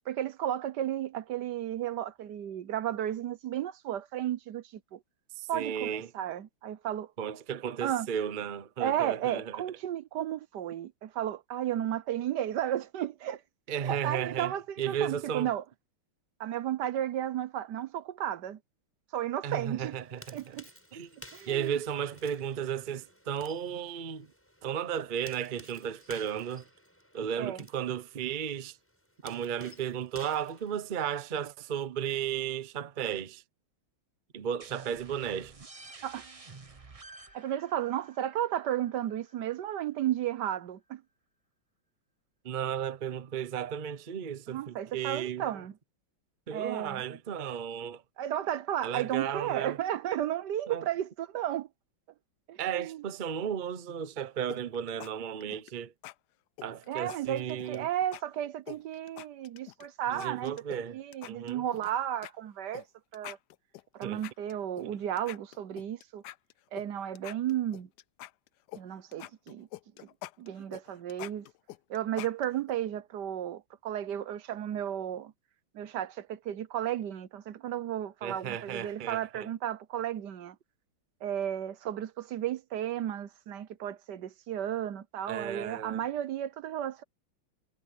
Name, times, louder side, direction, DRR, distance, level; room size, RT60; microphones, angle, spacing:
voice 1, 0.1-4.6 4.9-5.0 5.5-7.1 7.8-8.1 8.8-13.4 13.8-15.6 16.4-18.6 19.1-20.0 20.3-20.7 21.3-21.8 27.4-27.6 36.0-36.3 37.3-41.0 44.5-45.7 46.5-47.0 48.2-51.7 52.5-53.0 56.9-62.8 63.1-63.4 63.9-66.2 66.7-67.9 68.7-69.7 70.4-71.5 71.9-75.3 75.7-80.6 81.2-87.0, right 11 dB, 65° right, 1.3 m, -33 dB
voice 2, 5.4-6.1 7.2-9.6 13.7-15.5 19.4-20.6 20.9-21.1 21.5-24.3 24.6-26.6 27.1-28.8 29.2-33.4 34.3-35.5 42.4-45.6 46.5-48.0 48.8-49.8 50.7-50.9 52.6-55.9 56.6-57.9 60.1-61.0 61.3-61.6 64.0-64.2 78.2-79.5 85.3-86.0, right 8 dB, 80° right, 0.4 m, -34 dB
sound 1, 19.8-31.3, equal, 5° left, 7.9 m, -54 dB
sound 2, 34.6-40.0, right 3 dB, 30° right, 0.6 m, -51 dB
sound 3, 54.5-55.1 55.4-55.7 56.0-56.1 56.6-57.8 58.1-58.2 58.7-59.9 60.2-60.8 61.1-61.9 62.2-62.3 62.7-62.8 63.1-64.9 65.2-66.9 67.2-68.8 69.1-72.7, left 15 dB, 75° left, 0.9 m, -45 dB
omnidirectional pair, 2.2 m